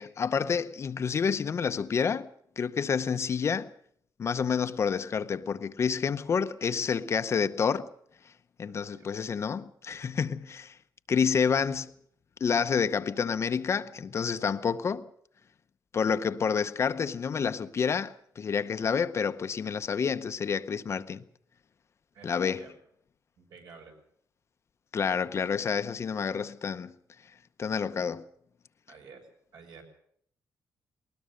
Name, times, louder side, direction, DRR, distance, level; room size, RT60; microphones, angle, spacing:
voice 1, 0.0-2.3 2.6-3.7 4.2-7.9 8.6-10.8 11.1-11.9 12.4-15.1 15.9-21.2 22.2-22.7 24.9-26.9 27.6-28.2, left 6 dB, 40° left, 0.7 m, -29 dB
voice 2, 23.4-24.0 28.9-29.2 29.5-29.8, right 5 dB, 70° right, 6.2 m, -50 dB
20.0 x 19.5 x 6.5 m
wide cardioid pair, 160°, 7 cm